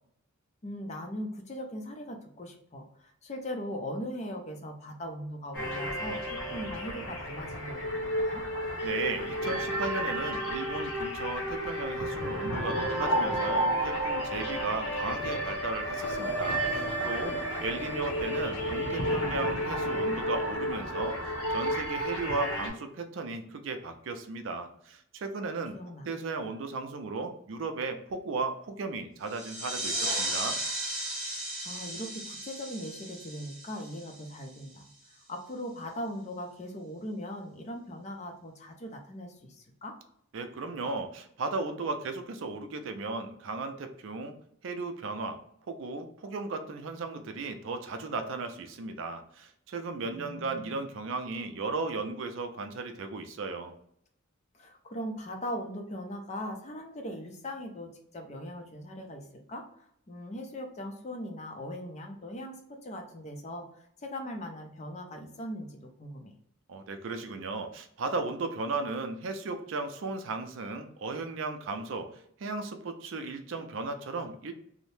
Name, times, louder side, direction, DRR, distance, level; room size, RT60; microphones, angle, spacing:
voice 1, 0.6-8.4 25.7-26.1 31.6-34.9 35.3-39.9 50.1-50.9 54.5-59.6 60.1-66.3, equal, 35° left, 4 dB, 0.5 m, -40 dB
sound 1, 5.5-22.7, equal, 75° left, 0.8 m, -31 dB
voice 2, 8.8-21.2 21.5-25.8 26.1-30.6 40.3-44.3 44.6-45.4 45.7-53.7 66.7-72.1 72.4-74.5, right 3 dB, 65° right, 7 dB, 0.4 m, -35 dB
sound 2, 29.3-34.6, right 1 dB, 5° right, 0.8 m, -35 dB
2.7 x 2.0 x 3.1 m, 0.69 s
head